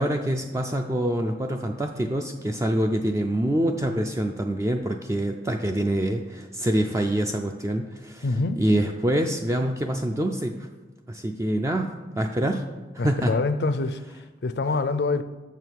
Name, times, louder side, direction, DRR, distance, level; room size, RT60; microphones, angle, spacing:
voice 1, 0.0-8.3 8.6-10.6 11.1-12.7 12.9-13.3, right 1 dB, 15° right, 0.3 m, -25 dB
voice 2, 8.2-8.6 13.0-14.0 14.4-15.2, left 3 dB, 65° left, 0.4 m, -25 dB
6.9 x 6.3 x 4.5 m
head